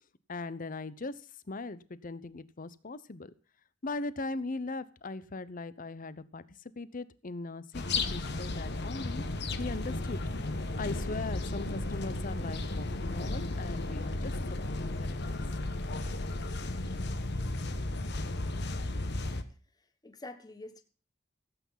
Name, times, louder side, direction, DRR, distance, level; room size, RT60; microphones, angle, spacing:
voice 1, 0.3-1.2 1.5-3.3 3.8-6.4 6.8-7.8 8.1-9.2 9.6-10.2 10.8-15.4, left 3 dB, 45° left, 16 dB, 0.8 m, -39 dB
sound 1, 7.7-19.4, left 2 dB, 60° left, 1.3 m, -34 dB
voice 2, 19.8-20.8, left 2 dB, 20° left, 7 dB, 1.3 m, -47 dB
16.0 x 8.5 x 5.8 m, 0.38 s
head